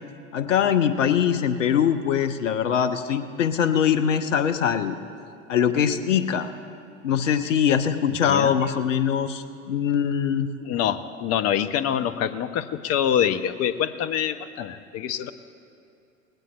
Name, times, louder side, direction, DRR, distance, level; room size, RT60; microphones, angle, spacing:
voice 1, 0.3-5.0 5.5-6.5 7.0-10.5, left 8 dB, 75° left, 11 dB, 0.8 m, -22 dB
voice 2, 8.2-8.6 10.6-15.3, left 9 dB, 40° left, 11 dB, 0.7 m, -25 dB
19.5 x 16.5 x 2.4 m, 2.7 s
figure-of-eight pair, 70°, 38 cm